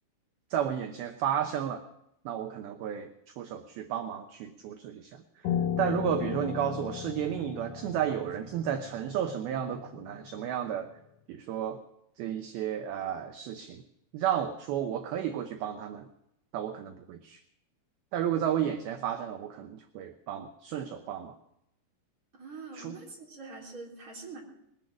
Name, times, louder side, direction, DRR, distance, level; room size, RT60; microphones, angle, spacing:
voice 1, 0.5-1.8 2.3-5.5 5.8-10.9 11.3-11.8 12.2-13.8 14.1-16.1 16.5-17.4 18.1-21.4 22.7-23.0, right 9 dB, 75° right, 7 dB, 2.4 m, -32 dB
Piano, 5.4-10.7, left 8 dB, 80° left, 1.5 m, -36 dB
voice 2, 22.3-24.4, right 3 dB, 20° right, -2 dB, 3.3 m, -44 dB
20.5 x 10.5 x 6.1 m, 0.78 s
omnidirectional pair, 5.1 m